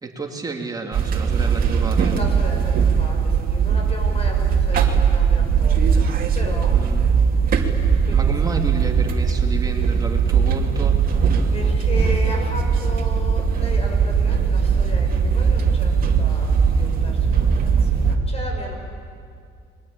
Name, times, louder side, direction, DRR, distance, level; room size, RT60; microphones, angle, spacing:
voice 1, 0.0-2.2 6.7-7.3 8.1-11.0, right 3 dB, 20° right, 1 dB, 2.9 m, -31 dB
sound 1, 0.9-18.2, right 6 dB, 50° right, 2.7 m, -19 dB
voice 2, 2.1-6.7 8.1-8.5 11.5-18.8, left 2 dB, 30° left, 2 dB, 6.8 m, -35 dB
30.0 x 22.0 x 8.7 m, 2.2 s
cardioid pair, 125°, 19 cm